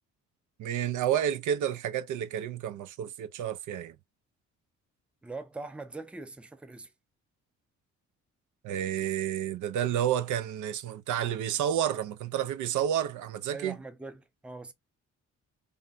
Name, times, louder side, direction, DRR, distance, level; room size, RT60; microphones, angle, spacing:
voice 1, 0.6-3.9 8.6-13.8, right 10 dB, 80° right, 0.6 m, -30 dB
voice 2, 5.2-6.9 13.5-14.7, right 3 dB, 5° right, 0.4 m, -42 dB
3.4 x 2.2 x 2.5 m
cardioid pair, 90°, 30 cm